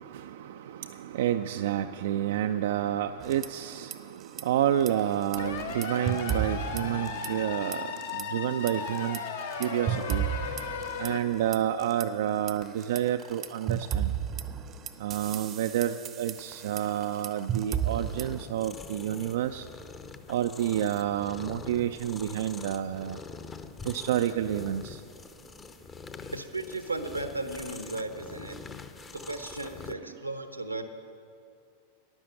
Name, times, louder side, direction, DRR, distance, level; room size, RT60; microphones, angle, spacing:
voice 1, 0.0-9.2 9.6-10.3 11.0-14.2 15.0-19.7 20.3-23.2 23.8-25.0 30.0-30.1, right 11 dB, 55° right, 8 dB, 0.4 m, -29 dB
sound 1, 3.2-4.0 4.2-4.4 4.8-7.5 7.7-8.2 8.7-12.0 12.5-18.4, right 9 dB, 30° right, 0.7 m, -34 dB
sound 2, 5.4-11.2, left 5 dB, 65° left, 1.3 m, -36 dB
sound 3, 17.7-29.9, left 4 dB, 20° left, 0.8 m, -45 dB
voice 2, 26.3-28.6 29.1-30.8, right 2 dB, 85° right, 9 dB, 1.0 m, -35 dB
12.5 x 11.0 x 7.6 m, 2.4 s
figure-of-eight pair, 90°, 0 cm